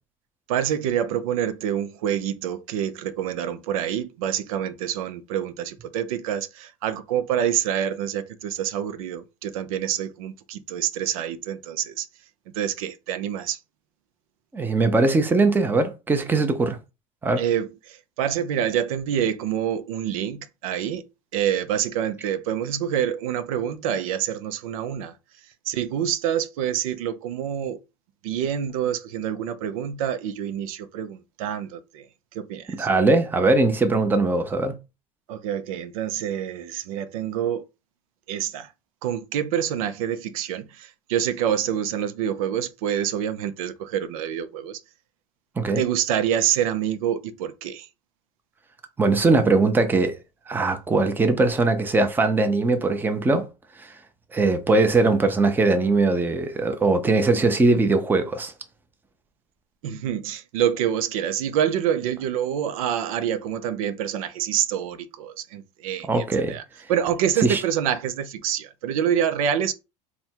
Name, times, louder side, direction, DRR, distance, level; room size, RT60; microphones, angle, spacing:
voice 1, 0.5-12.1 12.5-13.6 17.4-21.0 21.3-25.1 25.7-27.8 28.2-32.1 32.3-32.9 35.3-37.7 38.3-38.7 39.0-44.8 45.8-47.9 59.8-66.6 66.9-69.7, right 9 dB, 80° right, 0.6 m, -27 dB
voice 2, 14.5-16.8 17.2-17.4 32.8-34.8 45.6-45.8 49.0-50.1 50.5-53.5 53.8-53.9 54.3-58.5 66.1-66.5 67.4-67.6, right 3 dB, 10° right, 0.6 m, -20 dB
3.4 x 2.3 x 4.4 m
supercardioid pair, 125°, 17 cm